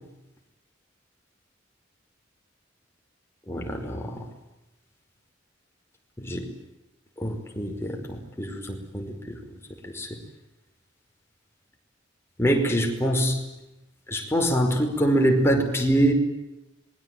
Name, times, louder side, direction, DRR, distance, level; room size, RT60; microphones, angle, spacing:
voice 1, 3.5-4.2 6.2-6.5 7.2-9.4 9.9-10.1 12.4-13.4 14.1-16.1, right 1 dB, 15° left, 2 dB, 5.2 m, -24 dB
26.5 x 22.5 x 9.2 m, 0.96 s
head